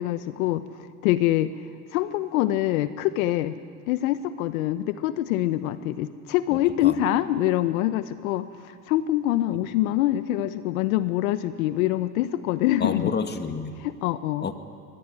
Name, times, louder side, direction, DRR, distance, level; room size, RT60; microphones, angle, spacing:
voice 1, 0.0-1.5 1.9-3.5 3.9-13.1 13.8-14.5, left 14 dB, 65° left, 12 dB, 1.2 m, -25 dB
voice 2, 6.5-7.0 12.8-13.7 14.4-14.5, left 5 dB, 20° left, 7 dB, 2.2 m, -30 dB
24.5 x 21.0 x 9.9 m, 2.3 s
hypercardioid pair, 100°, 44 cm